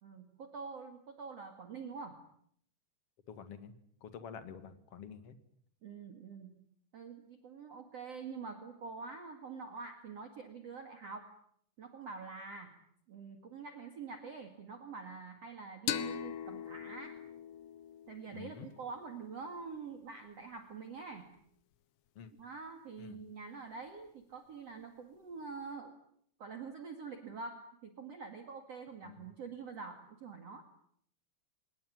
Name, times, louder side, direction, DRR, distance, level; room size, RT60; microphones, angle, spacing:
voice 1, 0.0-2.2 5.8-6.6 6.9-11.3 11.8-12.8 13.1-17.2 18.1-21.3 22.4-25.9 26.4-30.7, right 5 dB, 45° right, 6 dB, 2.6 m, -46 dB
voice 2, 3.3-3.8 4.0-5.3 18.3-18.7 22.2-22.3 23.0-23.2 29.0-29.3, left 7 dB, 45° left, 10 dB, 2.5 m, -48 dB
sound 1, 15.9-19.2, left 9 dB, 80° left, 3.5 m, -41 dB
26.5 x 21.5 x 9.7 m, 0.68 s
omnidirectional pair, 4.9 m